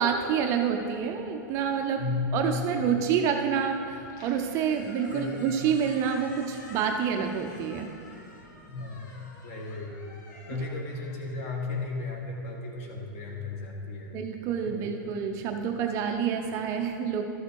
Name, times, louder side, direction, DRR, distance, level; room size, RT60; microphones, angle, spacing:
voice 1, 0.0-2.1 2.3-7.9 14.1-17.2, right 7 dB, 30° right, 5 dB, 0.5 m, -28 dB
voice 2, 2.0-2.8 5.1-5.6 8.7-9.0 9.4-10.1 10.5-14.2 14.6-15.0, left 3 dB, 45° left, 0 dB, 1.7 m, -34 dB
Squeak, 3.9-12.2, left 2 dB, 65° left, 1.8 m, -50 dB
13.0 x 6.6 x 4.6 m, 2.6 s
supercardioid pair, 165°, 11 cm